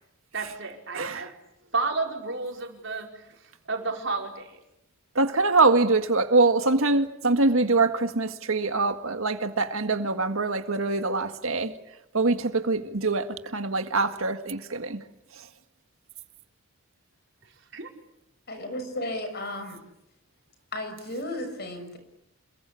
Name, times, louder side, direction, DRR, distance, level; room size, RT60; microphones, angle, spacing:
voice 1, 0.3-1.4 1.7-4.6 17.7-17.9, right 3 dB, 60° right, 5.1 m, -32 dB
voice 2, 0.9-1.3 5.2-11.7 12.1-15.0, right 3 dB, 80° right, 1.8 m, -24 dB
voice 3, 18.5-19.8 20.7-22.0, left 1 dB, 50° left, 6.4 m, -34 dB
28.0 x 22.5 x 8.6 m
head